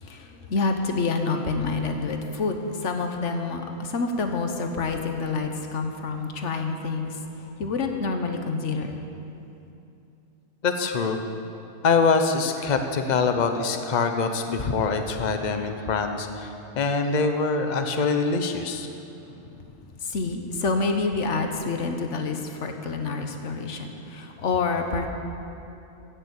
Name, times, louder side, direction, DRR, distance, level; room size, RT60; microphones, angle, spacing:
voice 1, 0.0-9.0 19.3-19.5 20.0-25.1, left 4 dB, 90° left, 5 dB, 1.4 m, -28 dB
voice 2, 10.6-11.2 11.8-16.5 16.7-18.9, left 4 dB, 40° left, 6 dB, 0.9 m, -24 dB
15.5 x 6.8 x 8.1 m, 2.8 s
omnidirectional pair, 1.2 m